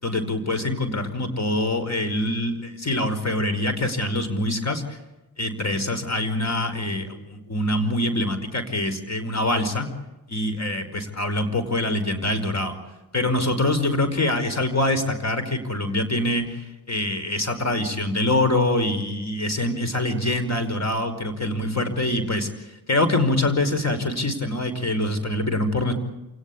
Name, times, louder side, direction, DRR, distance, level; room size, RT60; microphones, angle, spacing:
voice 1, 0.0-5.0 5.4-9.9 10.3-12.7 13.1-22.5 22.9-25.9, left 1 dB, 40° left, 9 dB, 5.3 m, -24 dB
28.0 x 18.0 x 8.7 m, 1.0 s
cardioid pair, 55°, 39 cm